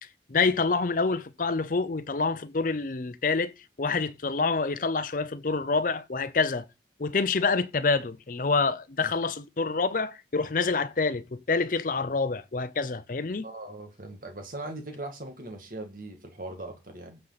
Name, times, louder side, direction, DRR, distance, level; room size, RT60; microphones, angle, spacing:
voice 1, 0.3-3.5 3.8-6.7 7.0-13.4, left 4 dB, 45° left, 0.6 m, -27 dB
voice 2, 13.4-17.2, right 2 dB, 50° right, 2.2 m, -40 dB
15.5 x 6.5 x 4.1 m
head